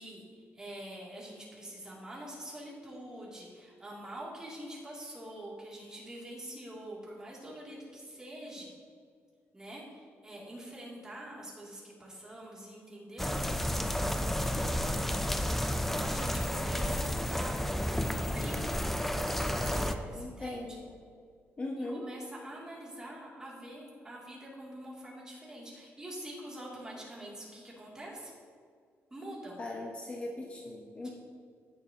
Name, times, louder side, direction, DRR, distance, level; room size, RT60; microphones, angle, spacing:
voice 1, 0.0-8.7 9.5-14.9 16.0-17.6 18.1-18.6 19.5-20.8 21.8-28.3 29.1-29.6 31.0-31.1, right 1 dB, 15° right, -5 dB, 2.7 m, -45 dB
sound 1, 13.2-20.0, left 1 dB, 5° left, 0.5 m, -31 dB
voice 2, 20.1-21.0 21.6-22.0 29.6-31.1, left 2 dB, 25° left, -1 dB, 1.0 m, -39 dB
16.5 x 6.7 x 2.9 m, 2.1 s
cardioid pair, 140°, 5 cm